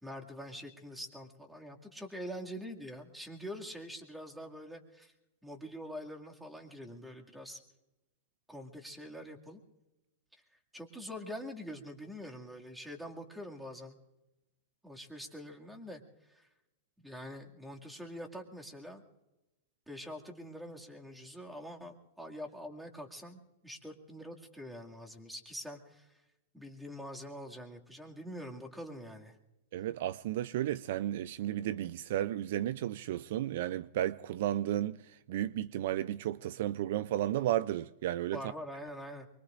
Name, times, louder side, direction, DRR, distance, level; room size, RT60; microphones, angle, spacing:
voice 1, 0.0-5.1 5.4-7.6 8.5-9.6 10.7-14.0 14.8-16.0 16.3-16.5 17.0-19.0 19.9-26.1 26.5-29.4 38.3-39.3, equal, 5° right, 2.2 m, -45 dB
voice 2, 29.7-35.0 35.3-38.4, right 13 dB, 65° right, 0.4 m, -33 dB
24.5 x 23.0 x 2.5 m
hypercardioid pair, 120°, 0 cm